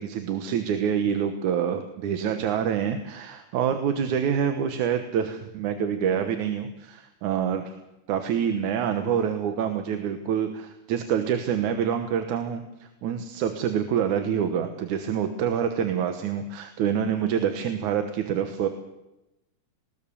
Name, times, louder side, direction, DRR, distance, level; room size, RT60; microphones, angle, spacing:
voice 1, 0.0-7.7 8.1-18.7, right 8 dB, 70° right, 7 dB, 2.4 m, -26 dB
19.5 x 19.5 x 7.0 m, 0.95 s
omnidirectional pair, 3.8 m